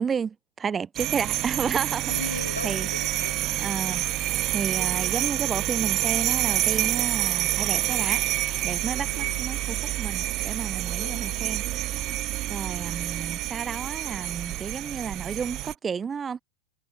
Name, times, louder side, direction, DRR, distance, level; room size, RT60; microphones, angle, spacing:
voice 1, 0.0-2.1 2.6-2.9 3.6-4.0 4.5-8.2 8.6-11.6 12.5-16.4, right 6 dB, 20° right, 2.1 m, -31 dB
sound 1, 1.0-15.7, right 16 dB, 35° right, 1.6 m, -28 dB
voice 2, 2.1-3.5 9.0-9.5 11.0-11.6, left 4 dB, 80° left, 3.3 m, -38 dB
figure-of-eight pair, 90°, 0 cm